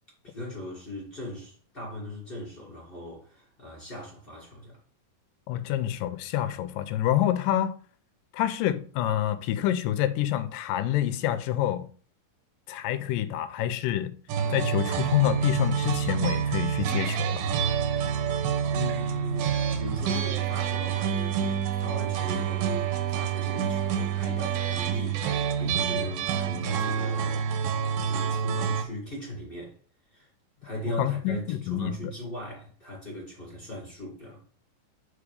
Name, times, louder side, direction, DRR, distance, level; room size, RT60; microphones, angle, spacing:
voice 1, 0.2-4.8 18.7-27.5 28.0-29.8 30.1-30.3 30.6-34.4, left 1 dB, 25° left, 1.3 m, -39 dB
voice 2, 5.5-7.8 8.3-11.9 12.7-14.1 14.5-17.4 31.0-32.1, left 12 dB, 80° left, 2.1 m, -27 dB
sound 1, 14.3-28.8, right 8 dB, 85° right, 2.7 m, -27 dB
5.3 x 5.0 x 5.0 m
omnidirectional pair, 4.1 m